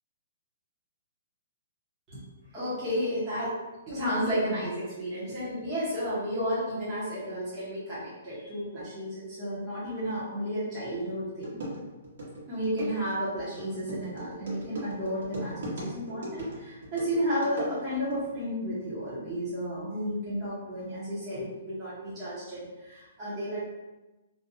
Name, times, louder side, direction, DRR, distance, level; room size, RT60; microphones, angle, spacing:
voice 1, 2.5-3.6 3.9-11.5 12.5-23.6, equal, 15° right, -12 dB, 0.7 m, -32 dB
sound 1, 11.0-11.1 11.4-18.1, right 1 dB, 65° right, 1.1 m, -38 dB
2.5 x 2.1 x 2.6 m, 1.1 s
hypercardioid pair, 170°, 0 cm